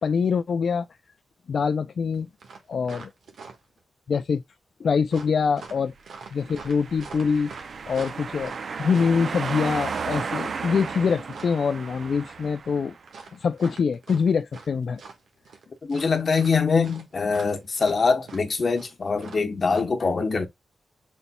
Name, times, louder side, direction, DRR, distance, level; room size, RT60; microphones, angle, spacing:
voice 1, 0.0-0.9 1.5-2.3 2.7-3.1 4.1-4.4 4.8-5.9 6.3-7.5 7.9-8.5 8.8-13.0 13.3-15.0, left 5 dB, 65° left, 0.4 m, -24 dB
sound 1, 2.1-2.2 2.4-3.8 5.1-11.6 13.1-14.7 14.9-15.6 15.9-19.8, right 4 dB, 85° right, 1.5 m, -44 dB
sound 2, 6.3-13.0, right 5 dB, 60° right, 0.6 m, -34 dB
voice 2, 15.8-20.5, left 4 dB, 45° left, 1.0 m, -23 dB
5.3 x 4.1 x 2.3 m
cardioid pair, 95°, 0 cm